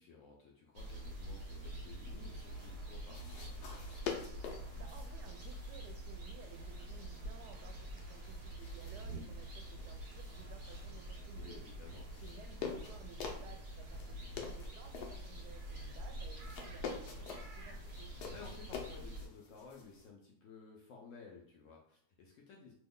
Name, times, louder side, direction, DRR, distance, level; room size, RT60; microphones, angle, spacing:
voice 1, 0.0-3.8 11.3-12.1 18.3-22.7, left 5 dB, 70° left, -1 dB, 0.8 m, -55 dB
sound 1, 0.7-19.3, right 1 dB, 55° right, 1.0 m, -46 dB
sound 2, 3.1-20.1, left 6 dB, 85° left, 1.2 m, -48 dB
voice 2, 4.7-11.6 12.2-14.2 14.5-18.1, right 7 dB, 80° right, 4 dB, 1.1 m, -57 dB
3.0 x 2.1 x 3.6 m, 0.68 s
omnidirectional pair, 1.7 m